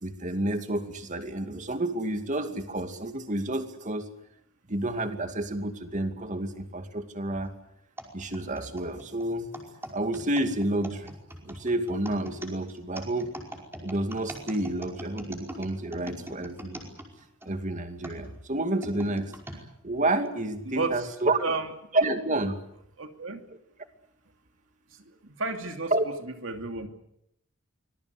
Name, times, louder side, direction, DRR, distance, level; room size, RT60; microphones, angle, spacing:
voice 1, 0.0-4.1 4.7-7.5 8.1-9.5 9.9-11.1 11.4-13.3 13.8-16.8 17.4-19.3 19.8-21.4 21.9-22.6 25.9-26.0, right 1 dB, 40° right, 7 dB, 2.5 m, -29 dB
sound 1, 8.0-17.5 18.0-19.6 20.3-20.4 21.2-21.5, right 1 dB, 10° right, 5.1 m, -42 dB
voice 2, 20.6-21.1 21.4-21.7 23.0-23.4 25.2-25.9 26.4-26.9, right 3 dB, 70° right, 5 dB, 2.7 m, -31 dB
25.0 x 21.0 x 8.2 m, 0.78 s
head